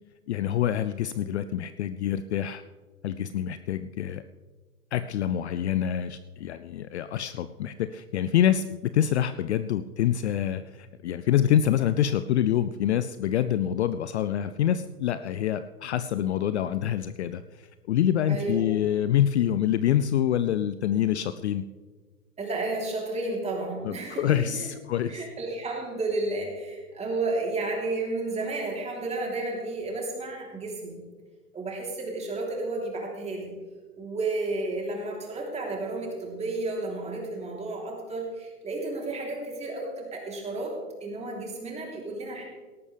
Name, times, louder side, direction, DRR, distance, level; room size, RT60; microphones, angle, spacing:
voice 1, 0.3-2.6 3.0-4.2 4.9-21.6 23.8-25.2, left 10 dB, 45° left, 12 dB, 0.5 m, -26 dB
voice 2, 18.3-18.6 22.4-24.7 25.1-31.0 31.5-33.6 34.0-42.4, right 2 dB, 15° right, -1 dB, 3.4 m, -32 dB
18.0 x 13.5 x 3.4 m, 1.4 s
hypercardioid pair, 120°, 47 cm